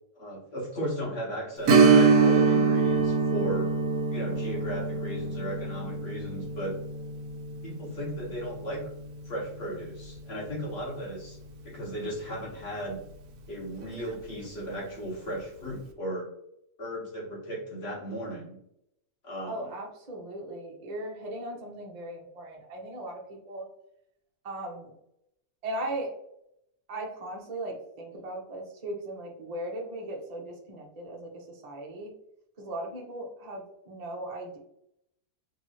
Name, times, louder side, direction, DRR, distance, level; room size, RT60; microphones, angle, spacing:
voice 1, 0.1-3.7 4.1-6.7 7.6-8.9 9.2-11.4 11.6-13.0 13.5-16.3 16.8-18.6 19.2-19.7, right 1 dB, 45° left, -3 dB, 1.5 m, -36 dB
Strum, 1.7-10.9 11.2-11.3 13.8-14.0 14.4-14.5, right 5 dB, 90° right, 1.2 m, -25 dB
voice 2, 19.5-23.7 24.4-24.9 25.6-26.1 26.9-32.1 32.6-34.6, right 1 dB, 35° right, 0 dB, 0.7 m, -38 dB
4.6 x 2.7 x 3.0 m, 0.78 s
omnidirectional pair, 1.6 m